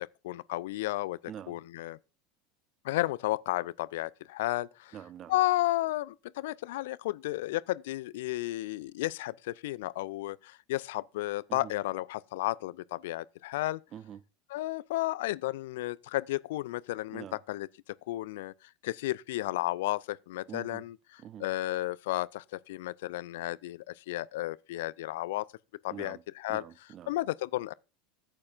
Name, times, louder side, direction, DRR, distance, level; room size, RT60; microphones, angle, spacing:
voice 1, 0.2-1.2 1.5-2.0 2.8-5.0 5.3-13.8 14.5-17.7 18.1-25.4 25.8-26.6 27.1-27.7, left 17 dB, 60° left, 0.4 m, -33 dB
voice 2, 1.3-1.6 4.9-5.3 11.5-11.7 13.9-14.2 17.1-17.4 20.5-20.8 21.2-21.4 25.9-26.2 26.5-27.1, right 10 dB, 35° right, 0.5 m, -45 dB
13.5 x 8.7 x 2.5 m
figure-of-eight pair, 80°, 0 cm